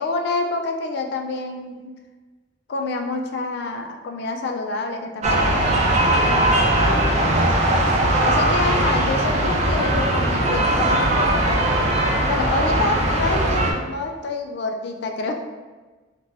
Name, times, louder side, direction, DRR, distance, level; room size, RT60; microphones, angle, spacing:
voice 1, 0.0-1.9 2.7-7.5 8.2-12.0 12.2-15.3, left 3 dB, 60° left, 4 dB, 0.3 m, -28 dB
sound 1, 5.2-13.7, right 1 dB, 35° right, 0.3 m, -19 dB
2.5 x 2.2 x 3.1 m, 1.3 s
head